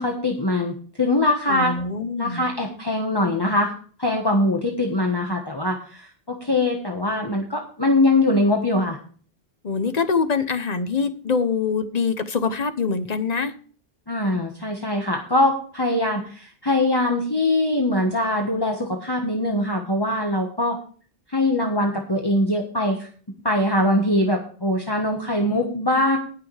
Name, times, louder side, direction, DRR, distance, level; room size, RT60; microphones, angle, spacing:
voice 1, 0.0-1.7 2.2-3.7 4.0-9.0 14.1-20.8 21.3-23.1 23.4-26.2, left 1 dB, 20° left, 1 dB, 1.4 m, -22 dB
voice 2, 1.5-2.5 9.6-13.5, left 5 dB, 40° left, 10 dB, 0.9 m, -24 dB
18.5 x 6.8 x 3.4 m, 0.42 s
omnidirectional pair, 1.1 m